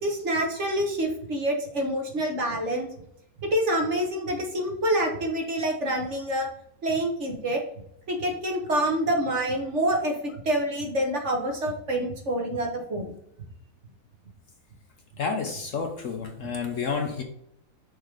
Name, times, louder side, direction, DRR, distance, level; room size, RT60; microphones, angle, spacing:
voice 1, 0.0-2.9 3.4-6.5 6.8-7.6 8.1-13.1, right 1 dB, 45° right, 1 dB, 1.6 m, -27 dB
voice 2, 15.2-17.2, left 5 dB, 55° left, 3 dB, 1.0 m, -30 dB
6.5 x 3.8 x 5.0 m, 0.74 s
omnidirectional pair, 1.8 m